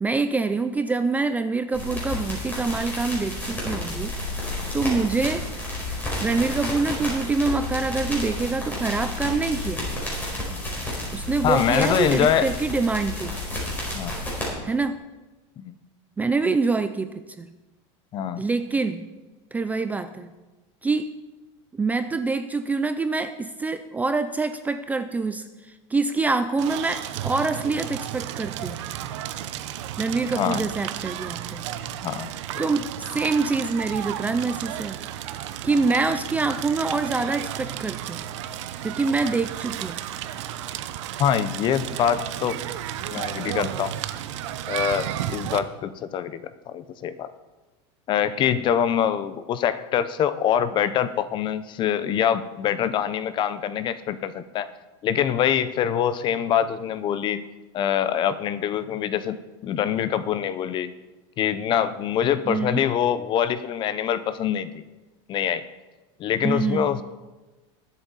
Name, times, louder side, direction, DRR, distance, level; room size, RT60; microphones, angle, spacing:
voice 1, 0.0-4.1 4.7-5.5 6.2-9.9 11.1-13.3 14.6-15.0 16.2-17.5 18.4-19.1 19.5-20.3 20.8-21.1 21.7-25.5 25.9-29.0 30.0-31.6 32.6-32.9 33.1-35.0 35.6-38.3 38.8-40.0 62.5-62.8 66.4-67.0, right 3 dB, 10° right, 10 dB, 0.4 m, -25 dB
sound 1, 1.7-14.5, left 1 dB, 10° left, 4.5 m, -31 dB
voice 2, 11.4-12.5 13.9-14.2 15.6-15.7 18.1-18.4 30.3-30.7 32.0-32.3 41.2-42.6 43.1-43.9 44.7-47.3 48.1-54.7 55.0-57.5 57.7-59.4 59.6-60.9 61.4-64.8 65.3-65.6 66.2-67.0, left 9 dB, 30° left, 13 dB, 0.6 m, -24 dB
Crackle, 26.6-45.6, right 11 dB, 85° right, 0.8 m, -33 dB
20.5 x 8.2 x 4.0 m, 1.2 s
supercardioid pair, 150°, 15 cm